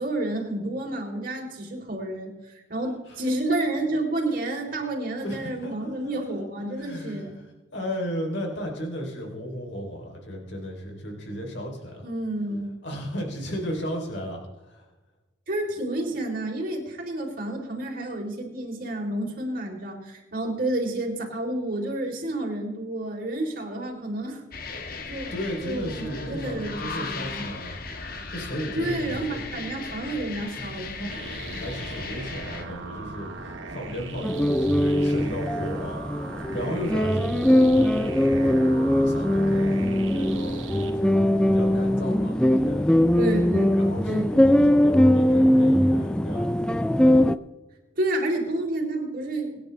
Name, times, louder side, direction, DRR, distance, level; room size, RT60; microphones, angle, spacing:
voice 1, 0.0-7.3 12.0-12.7 15.5-24.4 25.1-25.3 25.6-27.4 28.7-30.9 43.2-43.8 44.1-44.4 48.0-49.6, right 1 dB, 45° right, -1 dB, 3.8 m, -30 dB
voice 2, 5.2-6.4 6.7-7.3 7.7-12.1 12.8-14.9 25.3-27.8 28.3-29.4 30.5-36.0 36.3-41.2 41.4-42.9 43.7-46.9, equal, 65° left, 1 dB, 3.7 m, -35 dB
sound 1, 24.5-32.6, left 4 dB, 50° left, 1.6 m, -37 dB
sound 2, 31.1-40.9, right 2 dB, 85° right, 2.0 m, -38 dB
sound 3, 34.2-47.4, left 1 dB, 5° left, 0.4 m, -21 dB
24.5 x 10.0 x 3.4 m, 1.1 s
head